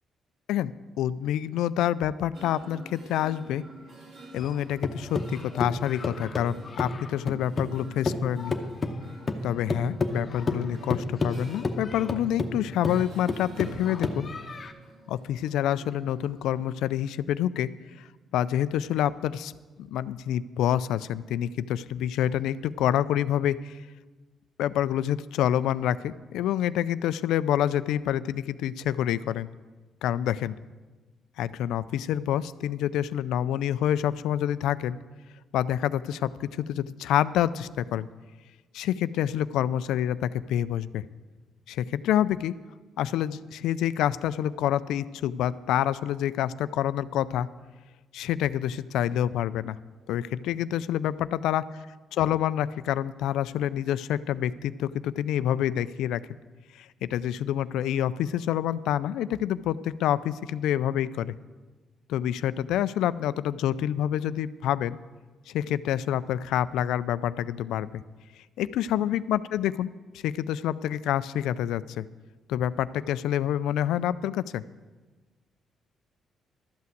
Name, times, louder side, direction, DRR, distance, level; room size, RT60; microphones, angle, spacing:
voice 1, 1.0-3.6 4.3-8.5 9.4-14.3 15.1-17.7 18.0-18.1 18.3-19.5 19.8-23.8 24.6-29.5 30.0-30.5 31.4-35.0 35.5-38.1 38.7-41.0 41.7-42.6 43.0-47.5 48.1-49.8 50.1-51.7 52.1-56.2 56.8-61.3 62.1-65.0 65.5-68.0 68.6-69.9 70.2-72.0 72.5-74.6, left 11 dB, 85° left, 16 dB, 0.3 m, -27 dB
sound 1, 2.3-16.6, right 1 dB, 70° right, 2.2 m, -49 dB
sound 2, 4.4-7.8 8.0-14.7, left 3 dB, 35° left, 0.9 m, -31 dB
12.5 x 5.8 x 7.6 m, 1.3 s
cardioid pair, 90°, 0 cm